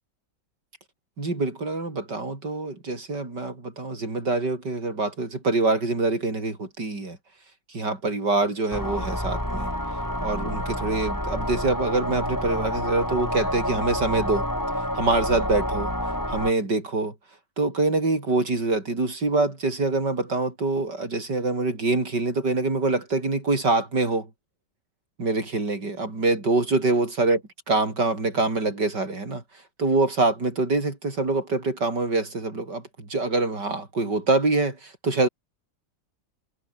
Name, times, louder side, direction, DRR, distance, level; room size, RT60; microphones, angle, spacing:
voice 1, 1.2-7.2 7.7-9.7 10.2-14.5 15.0-15.9 16.3-17.1 17.6-24.3 25.2-27.4 27.7-29.4 29.8-35.3, right 3 dB, 80° right, 6.0 m, -25 dB
sound 1, 8.7-16.5, equal, 10° left, 7.1 m, -28 dB
omnidirectional pair, 1.8 m